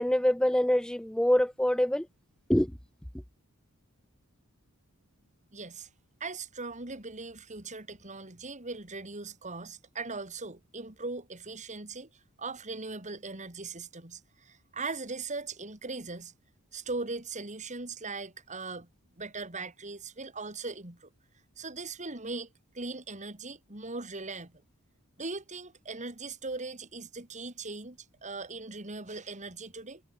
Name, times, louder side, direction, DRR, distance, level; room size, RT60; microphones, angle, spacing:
voice 1, 0.0-2.1 2.5-2.7, equal, 5° left, 0.5 m, -25 dB
voice 2, 5.5-5.9 6.2-12.1 12.4-16.3 16.7-18.9 19.1-21.1 21.6-22.5 22.7-24.5 25.2-30.0, right 3 dB, 35° right, 3.6 m, -39 dB
head